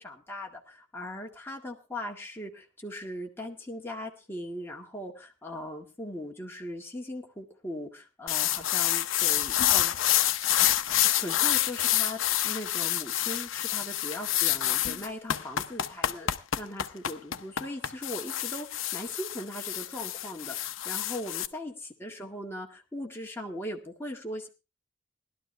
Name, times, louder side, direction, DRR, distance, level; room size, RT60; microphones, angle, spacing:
voice 1, 0.0-10.2 11.0-16.3 16.6-21.7 22.0-24.5, left 1 dB, 10° left, 0 dB, 1.9 m, -39 dB
sound 1, 8.3-21.5, left 12 dB, 85° left, 0.7 m, -27 dB
18.0 x 12.0 x 3.3 m, 0.30 s
head